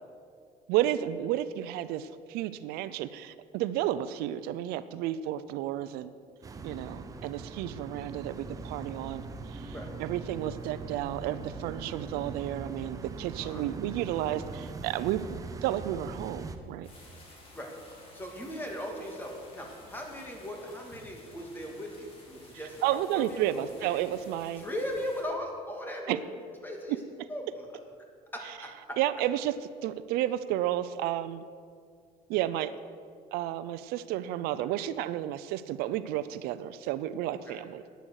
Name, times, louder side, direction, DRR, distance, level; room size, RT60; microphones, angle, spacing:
voice 1, 0.7-6.1 6.6-16.9 22.8-24.6 26.1-26.2 28.4-28.5 29.0-29.6 29.8-31.4 32.3-32.7 33.3-37.8, right 13 dB, 85° right, 14 dB, 0.5 m, -32 dB
sound 1, 6.4-16.6, right 4 dB, 20° right, 0.8 m, -41 dB
sound 2, 16.8-25.2, left 1 dB, 35° left, 3.2 m, -53 dB
voice 2, 18.1-22.8 23.1-24.0 24.6-26.3 26.6-27.0 27.3-27.4 28.3-29.0 37.5-37.6, equal, 15° left, 1 dB, 1.9 m, -38 dB
11.5 x 9.4 x 6.5 m, 2.1 s
cardioid pair, 155°, 16 cm